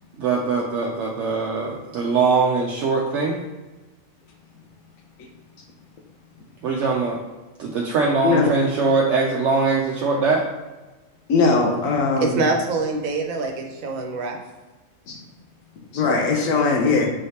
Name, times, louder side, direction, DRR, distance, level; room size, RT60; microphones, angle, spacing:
voice 1, 0.2-3.4 6.6-7.2 7.6-10.5, right 4 dB, 70° right, -1 dB, 0.8 m, -21 dB
voice 2, 11.3-12.4 15.1-15.2 15.9-17.1, left 4 dB, 85° left, 0 dB, 1.1 m, -19 dB
voice 3, 12.2-14.4, right 3 dB, 90° right, 2 dB, 1.2 m, -25 dB
5.3 x 3.3 x 2.8 m, 1.2 s
omnidirectional pair, 1.4 m